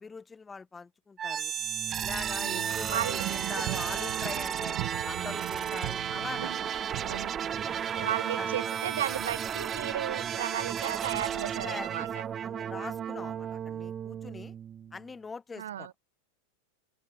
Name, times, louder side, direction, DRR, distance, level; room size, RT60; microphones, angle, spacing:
voice 1, 0.0-1.5 2.0-4.8 5.1-6.7 7.6-7.8 8.4-8.5 11.6-12.1 12.4-14.5 14.9-15.9, left 4 dB, 15° left, 0.6 m, -42 dB
sound 1, 1.2-15.1, right 8 dB, 30° right, 0.6 m, -33 dB
voice 2, 2.3-3.2 3.6-3.7 3.9-4.1 6.4-7.3 7.9-12.2 15.6-15.9, right 11 dB, 80° right, 0.4 m, -35 dB
sound 2, 3.0-8.1, right 24 dB, 55° right, 1.1 m, -39 dB
open air
hypercardioid pair, 110°, 0 cm